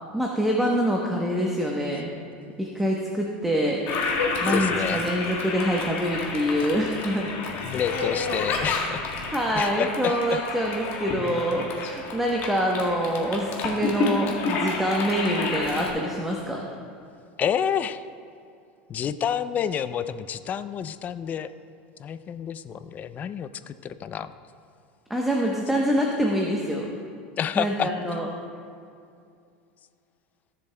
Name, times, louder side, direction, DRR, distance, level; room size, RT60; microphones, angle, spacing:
voice 1, 0.1-2.1 2.6-3.8 4.4-7.3 9.3-16.7 25.1-26.9 27.6-28.3, equal, 5° right, -1 dB, 0.9 m, -25 dB
Toilet flush, 3.9-15.9, left 3 dB, 50° left, 1.7 m, -30 dB
voice 2, 4.5-5.0 7.6-9.0 9.5-10.4 17.4-18.0 18.9-21.5 22.0-24.3 27.4-27.9, left 8 dB, 35° left, 13 dB, 0.4 m, -29 dB
16.0 x 7.3 x 2.2 m, 2.4 s
supercardioid pair, 105°, 5 cm